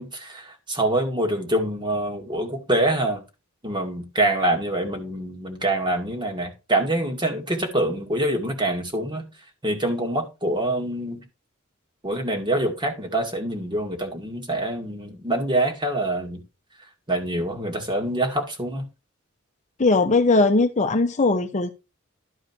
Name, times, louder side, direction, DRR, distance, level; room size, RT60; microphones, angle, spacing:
voice 1, 0.0-3.2 3.6-9.3 9.6-11.2 12.0-16.4 17.1-18.9, right 1 dB, 25° right, 2.2 m, -25 dB
voice 2, 19.8-21.7, left 3 dB, 35° left, 0.8 m, -19 dB
12.0 x 4.9 x 4.4 m
head